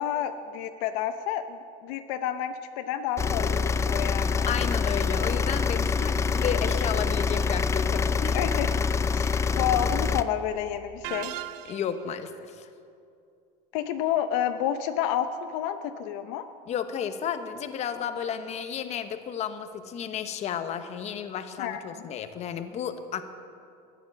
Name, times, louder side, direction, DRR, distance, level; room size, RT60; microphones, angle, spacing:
voice 1, 0.0-4.5 8.3-8.7 9.1-11.3 13.7-16.4 21.6-22.0, left 10 dB, 70° left, 9 dB, 0.8 m, -30 dB
sound 1, 3.2-10.2, left 5 dB, 15° left, 0.4 m, -25 dB
voice 2, 4.5-8.4 11.7-12.7 16.7-23.2, left 8 dB, 40° left, 9 dB, 1.0 m, -32 dB
sound 2, 11.0-12.1, right 15 dB, 70° right, 0.7 m, -37 dB
14.5 x 10.5 x 7.2 m, 2.5 s
supercardioid pair, 130°, 18 cm